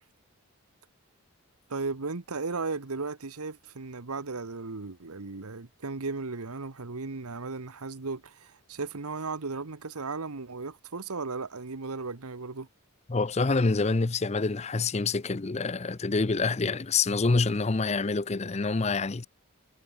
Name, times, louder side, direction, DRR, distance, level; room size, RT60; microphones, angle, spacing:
voice 1, 1.7-12.7, right 4 dB, 85° right, 1.2 m, -36 dB
voice 2, 13.1-19.3, left 3 dB, 30° left, 0.5 m, -26 dB
head